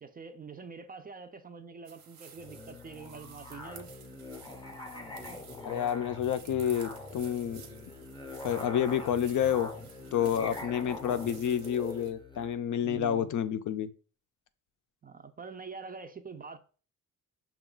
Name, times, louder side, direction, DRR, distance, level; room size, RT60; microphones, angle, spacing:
voice 1, 0.0-3.9 10.3-10.6 12.8-13.3 15.0-16.6, right 5 dB, 25° right, 0.4 m, -45 dB
sound 1, 1.8-12.1, right 7 dB, 90° right, 1.0 m, -54 dB
Musical instrument, 2.4-12.5, left 2 dB, 15° left, 0.6 m, -44 dB
voice 2, 5.6-7.6 8.4-9.7 10.1-13.9, left 9 dB, 60° left, 0.5 m, -29 dB
6.0 x 2.3 x 3.7 m
cardioid pair, 130°, 35 cm